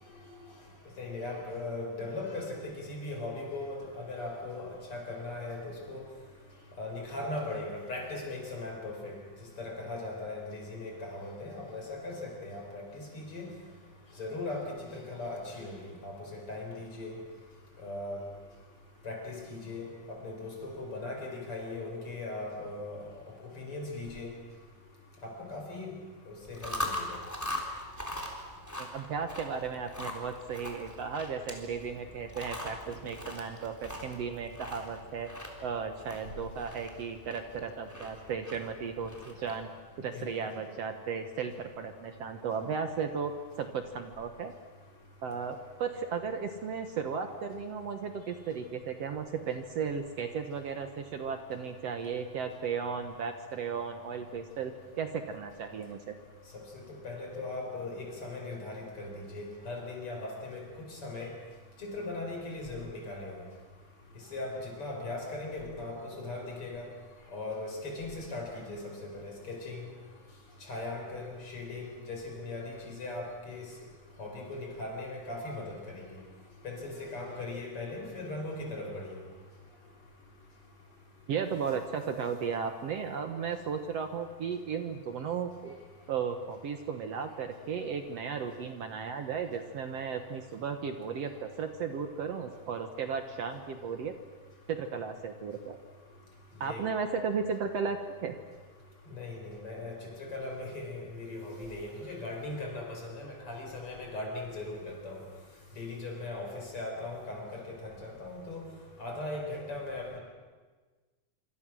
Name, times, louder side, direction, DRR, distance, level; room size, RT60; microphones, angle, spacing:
voice 1, 1.0-6.1 6.8-9.2 9.6-13.5 14.2-17.2 17.8-18.2 19.0-23.0 23.6-24.3 25.2-25.9 26.3-27.2 40.1-40.6 56.7-60.6 60.9-61.3 61.8-63.4 64.3-66.9 67.3-69.9 70.7-73.7 74.2-76.1 76.6-79.2 96.6-96.9 99.1-105.2 105.8-108.7 109.0-110.2, left 2 dB, 45° left, 2 dB, 5.8 m, -39 dB
Chewing mastication, 26.4-39.6, left 1 dB, 5° left, 3.4 m, -41 dB
voice 2, 28.8-35.3 35.6-39.7 40.0-43.3 43.6-44.5 45.2-56.1 81.3-85.8 86.1-94.1 94.7-95.8 96.6-98.4, right 6 dB, 60° right, 6 dB, 2.1 m, -35 dB
26.0 x 26.0 x 6.3 m, 1.4 s
omnidirectional pair, 3.5 m